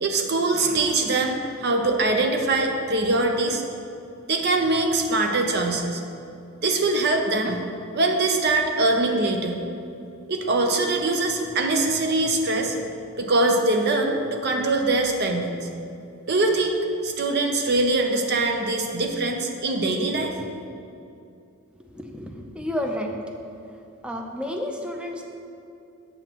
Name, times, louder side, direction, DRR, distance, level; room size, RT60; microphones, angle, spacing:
voice 1, 0.0-3.6 4.3-6.0 6.6-7.6 7.9-9.6 10.3-12.8 13.2-15.6 16.3-16.8 17.0-20.3, right 2 dB, 50° right, 3 dB, 0.6 m, -23 dB
voice 2, 21.9-23.2 24.0-25.2, left 1 dB, 5° right, 2 dB, 0.5 m, -31 dB
7.9 x 7.8 x 3.0 m, 2.6 s
head